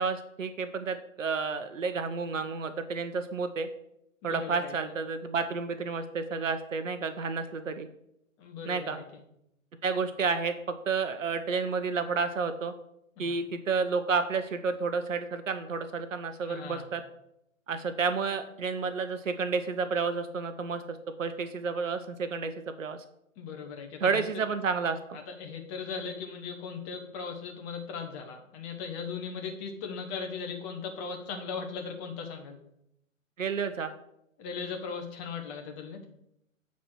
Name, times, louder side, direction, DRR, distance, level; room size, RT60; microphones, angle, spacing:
voice 1, 0.0-3.7 4.2-7.9 8.7-9.0 9.8-12.7 13.2-17.0 17.7-22.5 22.8-23.0 24.0-25.2 33.4-33.9, right 5 dB, 65° right, 9 dB, 0.9 m, -31 dB
voice 2, 4.2-4.8 8.4-9.2 13.2-13.3 16.4-16.8 23.4-24.2 25.1-32.6 34.4-36.0, left 5 dB, 15° left, 3 dB, 0.8 m, -38 dB
7.4 x 4.2 x 6.2 m, 0.79 s
figure-of-eight pair, 135°, 41 cm